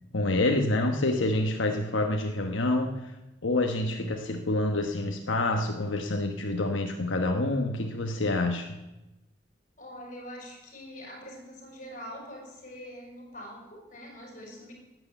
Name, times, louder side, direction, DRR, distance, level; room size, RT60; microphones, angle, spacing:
voice 1, 0.1-3.1 3.4-8.8, left 2 dB, 90° left, 4 dB, 1.1 m, -27 dB
voice 2, 9.8-14.7, equal, 45° left, 0 dB, 5.4 m, -44 dB
12.0 x 9.3 x 8.1 m, 0.98 s
head